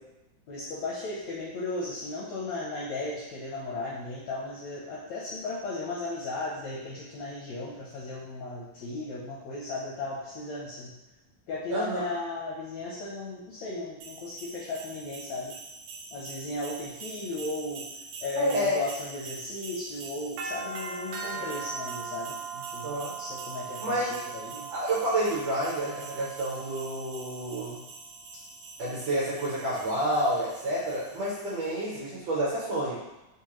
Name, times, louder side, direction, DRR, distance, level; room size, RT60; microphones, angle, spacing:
voice 1, 0.5-10.9 11.5-15.5 16.1-17.8 18.2-22.9 23.2-24.7, left 2 dB, 80° left, -5 dB, 1.5 m, -36 dB
voice 2, 11.7-12.1 18.4-18.8 21.2-21.4 22.8-23.1 23.8-24.1 24.7-27.8 28.8-33.0, right 1 dB, 65° right, -6 dB, 1.7 m, -29 dB
sound 1, 14.0-31.7, right 5 dB, 85° right, 2.0 m, -41 dB
6.3 x 2.2 x 2.9 m, 1.0 s
omnidirectional pair, 3.7 m